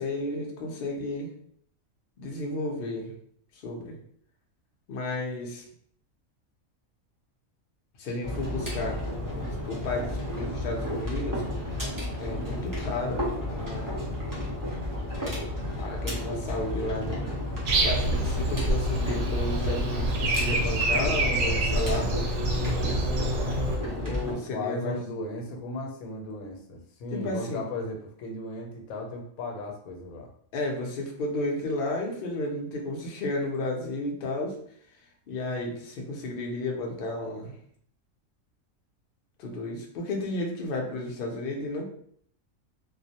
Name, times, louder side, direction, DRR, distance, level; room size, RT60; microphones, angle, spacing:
voice 1, 0.0-1.3 2.2-3.1 3.6-4.0 4.9-5.6 8.0-9.0 9.3-11.8 12.2-14.1 15.8-17.3 17.8-22.1 24.0-25.0 27.1-27.6 30.5-34.6 35.3-37.6 39.4-41.9, left 2 dB, 60° left, 0 dB, 0.6 m, -32 dB
sound 1, 8.2-24.3, left 1 dB, 30° right, 0.3 m, -32 dB
Breathing, 17.7-23.8, right 1 dB, 80° right, 1.0 m, -27 dB
voice 2, 24.3-30.3, left 2 dB, 90° left, 2 dB, 1.0 m, -36 dB
2.4 x 2.0 x 2.7 m, 0.63 s
omnidirectional pair, 1.5 m